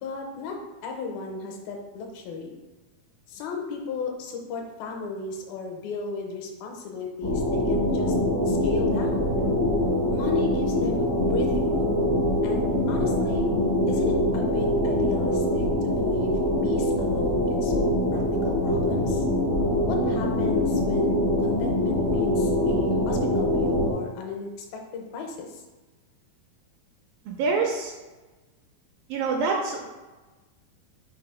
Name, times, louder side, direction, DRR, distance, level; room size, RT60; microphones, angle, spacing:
voice 1, 0.0-2.5 3.3-8.2 8.5-9.4 10.1-12.0 12.4-13.5 13.9-19.2 19.9-25.6, left 4 dB, 80° left, 2 dB, 2.5 m, -34 dB
sound 1, 7.2-23.9, left 1 dB, 60° left, 0.8 m, -24 dB
voice 2, 27.3-27.9 29.1-29.8, right 4 dB, 85° right, 1 dB, 2.1 m, -26 dB
5.8 x 3.5 x 4.8 m, 1.2 s
omnidirectional pair, 4.5 m